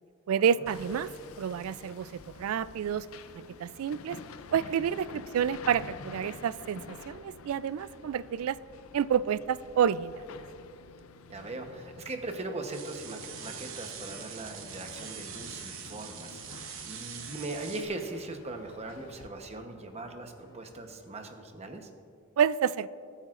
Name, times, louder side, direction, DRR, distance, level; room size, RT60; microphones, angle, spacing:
voice 1, 0.3-1.1 1.4-3.1 3.6-4.2 4.5-8.6 8.9-10.2 22.4-22.9, right 8 dB, 80° right, 17 dB, 0.3 m, -29 dB
Hammer, 0.7-19.3, left 4 dB, 75° left, 0.5 m, -49 dB
voice 2, 11.3-21.9, right 2 dB, 30° right, 5 dB, 1.0 m, -40 dB
sound 1, 12.7-17.8, right 8 dB, 65° right, 1.0 m, -43 dB
sound 2, 13.9-21.2, left 1 dB, 50° left, 1.3 m, -60 dB
21.0 x 8.8 x 2.5 m, 2.3 s
head